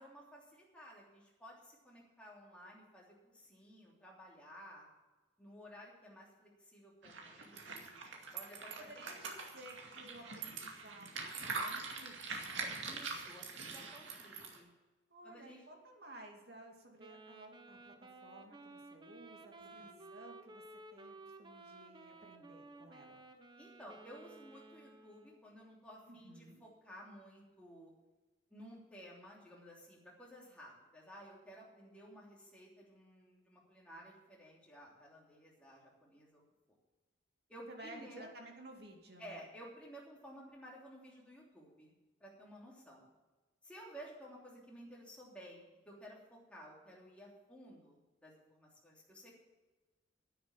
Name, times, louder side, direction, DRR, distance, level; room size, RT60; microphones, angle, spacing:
voice 1, 0.0-4.8 5.4-8.0 8.3-9.1 12.8-14.7 15.2-15.7 19.7-20.1 23.6-27.9 28.5-36.4 37.5-38.3 39.2-41.9 42.2-43.0 43.6-49.3, equal, 5° left, -4 dB, 3.1 m, -55 dB
sound 1, 7.0-14.6, right 4 dB, 85° right, 2.3 m, -44 dB
voice 2, 8.8-12.2 15.1-20.6 20.9-23.2 26.1-26.6 37.7-39.4, right 1 dB, 55° right, 1 dB, 2.4 m, -55 dB
Wind instrument woodwind instrument, 17.0-25.5, right 2 dB, 25° right, 0.9 m, -55 dB
10.0 x 9.5 x 7.3 m, 1.2 s
head